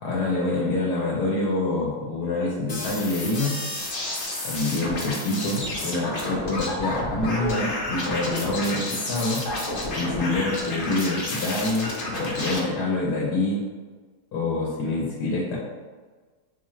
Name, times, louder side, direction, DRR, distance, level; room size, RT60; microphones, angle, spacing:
voice 1, 0.0-3.6 4.4-9.5 9.9-11.9 12.2-13.6 14.3-15.6, left 2 dB, 80° left, -5 dB, 1.3 m, -26 dB
sound 1, 2.7-12.6, left 1 dB, 50° left, 0.6 m, -30 dB
4.3 x 2.3 x 3.1 m, 1.4 s
omnidirectional pair, 1.7 m